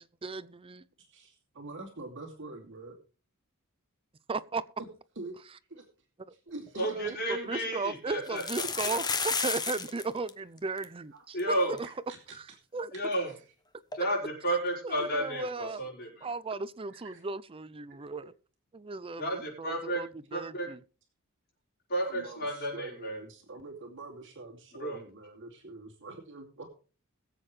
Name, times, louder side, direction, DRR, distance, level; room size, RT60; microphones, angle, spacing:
voice 1, 0.2-0.8 4.3-4.6 6.9-11.9 12.3-12.4 12.7-12.9 14.8-15.8 16.2-18.3 18.7-20.8, right 3 dB, 25° right, 0.5 m, -36 dB
voice 2, 1.1-3.0 4.8-4.9 5.2-5.4 5.7-5.8 6.5-6.9 11.1-11.2 11.8-12.4 15.0-15.3 15.7-15.8 16.9-17.2 22.1-26.7, right 3 dB, 60° right, 2.6 m, -45 dB
voice 3, 6.7-8.4 11.3-11.8 12.9-13.3 13.9-16.3 19.2-20.0 20.3-20.7 21.9-23.2 24.8-25.0, right 1 dB, 45° left, 5.4 m, -32 dB
sound 1, 6.7-6.8 7.0-7.1 8.3-10.0 10.3-10.4 10.6-10.8 11.4-11.5 11.8-11.9 13.9-14.0, left 5 dB, 20° left, 1.0 m, -32 dB
21.5 x 7.8 x 3.3 m
head